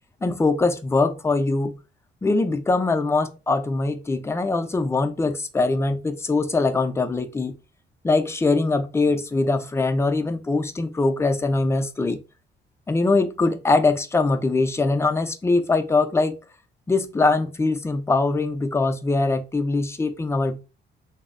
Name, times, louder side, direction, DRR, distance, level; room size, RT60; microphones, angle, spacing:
voice 1, 0.2-1.8 2.2-7.5 8.0-12.2 12.9-16.4 16.9-20.6, left 3 dB, 15° left, 0.4 m, -22 dB
2.6 x 2.0 x 2.5 m
cardioid pair, 90°, 20 cm